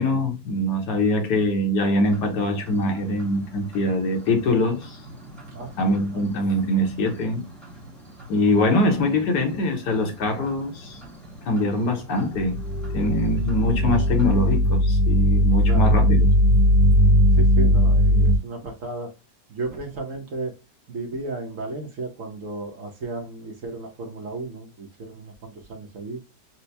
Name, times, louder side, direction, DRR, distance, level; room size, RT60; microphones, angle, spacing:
voice 1, 0.0-5.0 5.8-7.4 8.3-11.0 11.5-12.6 12.9-16.3, left 1 dB, 75° left, 1.4 m, -23 dB
sound 1, 2.0-14.6, equal, ahead, 0.6 m, -44 dB
voice 2, 5.5-6.2 15.7-15.9 17.3-19.1 19.5-20.6 20.9-26.2, right 2 dB, 55° right, 1.0 m, -34 dB
sound 2, 12.3-18.4, equal, 35° right, 1.5 m, -18 dB
4.3 x 2.1 x 2.6 m
omnidirectional pair, 1.9 m